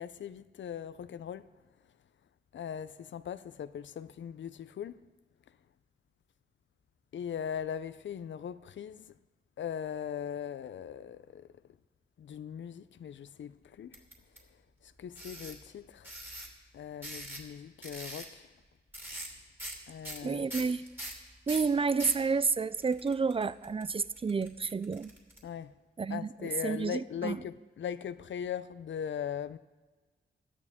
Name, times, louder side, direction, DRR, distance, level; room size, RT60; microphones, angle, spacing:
voice 1, 0.0-1.4 2.5-5.0 7.1-9.1 9.6-11.5 12.2-14.0 14.8-16.1 16.7-18.5 19.9-20.5 25.4-25.7 26.1-29.6, left 8 dB, 75° left, 0.5 m, -39 dB
sound 1, 13.9-14.4 15.2-15.6 16.0-16.5 17.0-17.5 17.8-18.3 18.9-19.3 19.6-19.8 20.0-22.2 22.8-25.4, right 1 dB, 10° right, 2.9 m, -42 dB
voice 2, 20.2-20.8 21.5-25.1 26.0-27.4, right 5 dB, 30° right, 0.4 m, -30 dB
17.0 x 12.0 x 3.6 m
cardioid pair, 65°, 19 cm